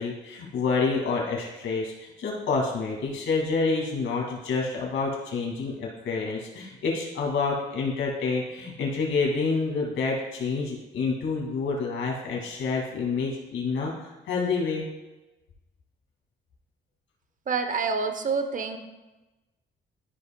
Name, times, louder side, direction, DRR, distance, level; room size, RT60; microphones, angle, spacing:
voice 1, 0.0-14.9, left 4 dB, 75° left, -2 dB, 2.3 m, -28 dB
voice 2, 17.5-18.8, right 5 dB, 40° right, 8 dB, 0.8 m, -27 dB
12.5 x 5.1 x 2.3 m, 1.1 s
cardioid pair, 90°, 20 cm